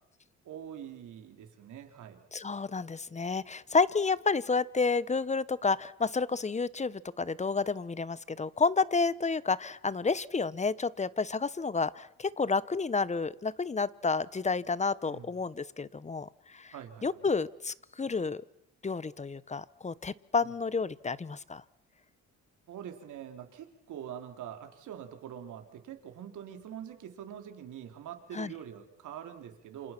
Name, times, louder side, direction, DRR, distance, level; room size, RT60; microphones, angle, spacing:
voice 1, 0.4-2.2 15.1-15.3 16.7-17.1 22.7-29.9, right 9 dB, 75° right, 5 dB, 3.7 m, -44 dB
voice 2, 2.3-16.7 17.0-18.4 18.8-21.6 28.3-28.5, left 4 dB, 25° left, 19 dB, 0.9 m, -30 dB
28.0 x 27.0 x 5.9 m, 0.75 s
cardioid pair, 90°, 30 cm